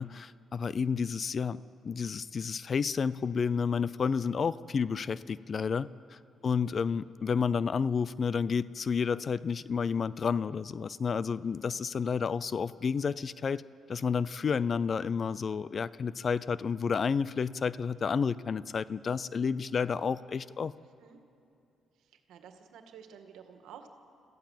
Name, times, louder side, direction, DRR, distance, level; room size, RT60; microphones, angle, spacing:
voice 1, 0.0-13.6 13.9-20.7, left 6 dB, 45° left, 18 dB, 0.5 m, -31 dB
voice 2, 22.0-23.9, right 8 dB, 85° right, 6 dB, 1.9 m, -51 dB
26.5 x 15.0 x 7.5 m, 2.6 s
cardioid pair, 90°, 0 cm